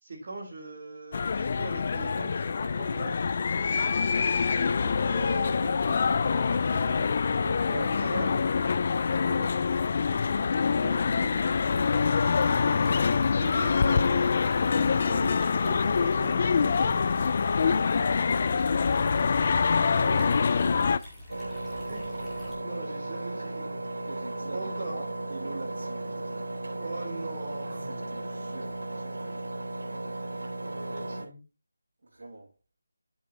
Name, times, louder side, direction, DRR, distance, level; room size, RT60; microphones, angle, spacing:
voice 1, 0.0-3.2 4.5-7.8 8.1-8.4 10.8-12.4 12.9-14.4 14.9-17.2 20.0-20.8 21.8-23.9 24.5-25.0 26.8-28.0 30.2-31.4, right 2 dB, 35° right, 3.7 m, -41 dB
sound 1, 1.1-21.0, left 5 dB, 35° left, 0.3 m, -25 dB
voice 2, 7.4-8.5 9.0-9.7 10.1-10.5 12.6-13.0 14.7-15.1 17.5-19.3 20.7-20.9 24.1-26.6 27.8-29.5 32.0-32.5, right 2 dB, 65° right, 2.3 m, -43 dB
sound 2, 11.3-22.6, left 1 dB, 5° left, 2.0 m, -46 dB
Engine, 21.3-31.2, right 2 dB, 85° right, 3.6 m, -35 dB
10.5 x 8.3 x 2.9 m
figure-of-eight pair, 170°, 0 cm